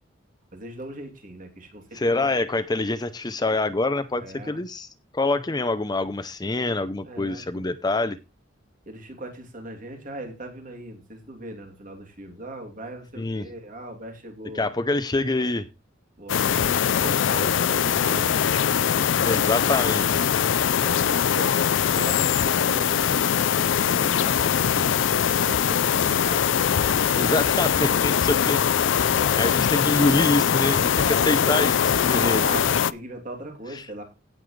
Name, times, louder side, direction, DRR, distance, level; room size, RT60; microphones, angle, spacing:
voice 1, 0.5-2.3 4.1-4.6 7.0-7.6 8.9-14.7 16.2-18.5 19.1-20.3 20.8-21.5 21.8-23.2 23.7-26.5 26.7-27.4 28.9-29.6 32.1-34.0, right 1 dB, 45° right, 3 dB, 3.0 m, -39 dB
voice 2, 1.9-4.9 5.1-8.2 13.2-13.5 14.5-15.7 19.2-20.3 27.2-28.7 29.4-32.5 33.7-33.9, left 2 dB, 20° left, 12 dB, 0.6 m, -25 dB
sound 1, 16.3-32.9, left 8 dB, 75° left, 0.5 m, -22 dB
16.5 x 7.3 x 3.2 m, 0.27 s
head